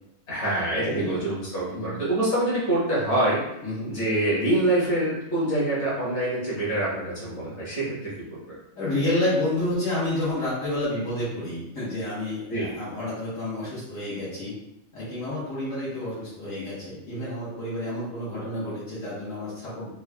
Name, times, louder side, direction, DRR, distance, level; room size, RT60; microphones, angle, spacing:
voice 1, 0.3-3.4 3.9-8.3 12.5-12.7, right 1 dB, 60° left, -8 dB, 1.9 m, -25 dB
voice 2, 8.8-14.5 14.9-19.9, left 1 dB, 75° left, -10 dB, 1.7 m, -29 dB
4.3 x 2.3 x 3.4 m, 0.84 s
omnidirectional pair, 1.4 m